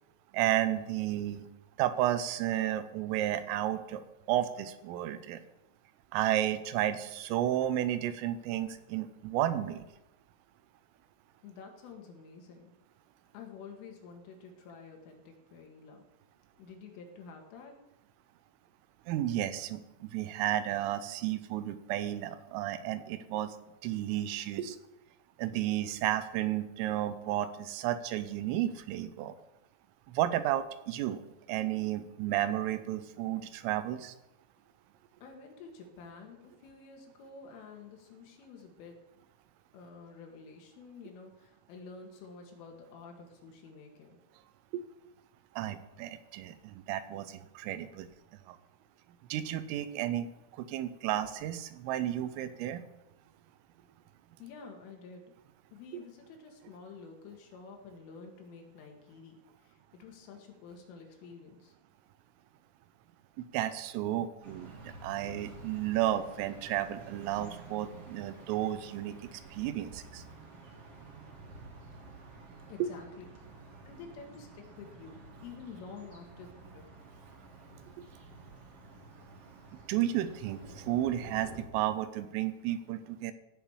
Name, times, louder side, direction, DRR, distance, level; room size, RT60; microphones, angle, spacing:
voice 1, 0.3-1.5 1.8-5.4 6.1-9.9 19.1-23.6 23.8-24.8 25.4-29.3 30.1-31.2 31.5-34.1 44.7-44.8 45.6-48.1 48.5-48.6 49.3-50.3 50.6-52.8 63.4-70.2 72.8-72.9 79.9-83.3, right 12 dB, 85° right, 12 dB, 3.4 m, -32 dB
voice 2, 11.4-12.7 13.3-16.0 16.6-17.7 35.2-39.0 39.7-44.2 54.4-55.3 55.7-61.7 72.6-73.3 73.9-76.8, left 5 dB, 75° left, 2 dB, 4.4 m, -49 dB
sound 1, 64.4-81.6, right 3 dB, 50° right, 1.7 m, -51 dB
16.5 x 6.7 x 7.2 m, 0.92 s
omnidirectional pair, 5.9 m